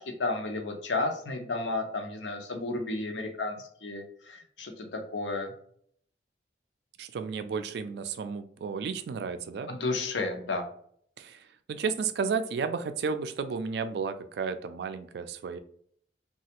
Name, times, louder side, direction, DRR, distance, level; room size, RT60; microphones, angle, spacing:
voice 1, 0.0-5.5 9.7-10.7, left 2 dB, 90° left, 3 dB, 0.7 m, -32 dB
voice 2, 7.0-9.7 11.2-15.6, right 5 dB, 65° right, 10 dB, 0.3 m, -33 dB
3.2 x 2.3 x 2.8 m, 0.62 s
head